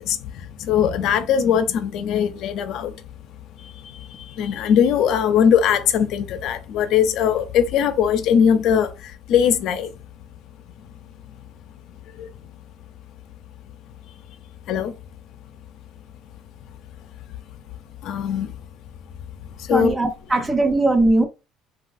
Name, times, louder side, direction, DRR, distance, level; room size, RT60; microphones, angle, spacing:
voice 1, 0.0-3.0 3.6-9.9 10.8-10.9 11.3-11.4 12.1-12.3 14.7-14.9 18.0-18.5 19.6-19.9, left 8 dB, 55° left, 0.4 m, -21 dB
voice 2, 19.7-21.3, right 2 dB, 15° right, 0.4 m, -19 dB
3.1 x 2.3 x 2.5 m
cardioid pair, 160°, 0 cm